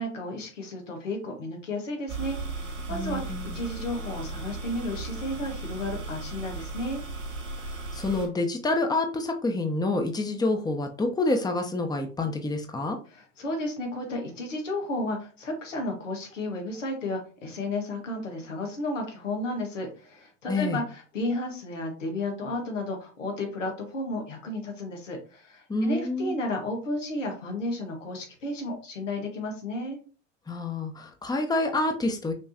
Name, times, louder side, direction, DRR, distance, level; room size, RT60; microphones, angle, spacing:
voice 1, 0.0-7.0 13.1-30.0, left 1 dB, 90° left, 2 dB, 1.6 m, -33 dB
sound 1, 2.1-8.3, right 3 dB, 80° right, 2.2 m, -36 dB
voice 2, 2.9-3.6 7.7-13.0 20.5-20.8 25.7-26.3 30.5-32.3, left 2 dB, 10° left, 5 dB, 0.9 m, -28 dB
6.1 x 3.0 x 2.9 m, 0.37 s
hypercardioid pair, 85°, 37 cm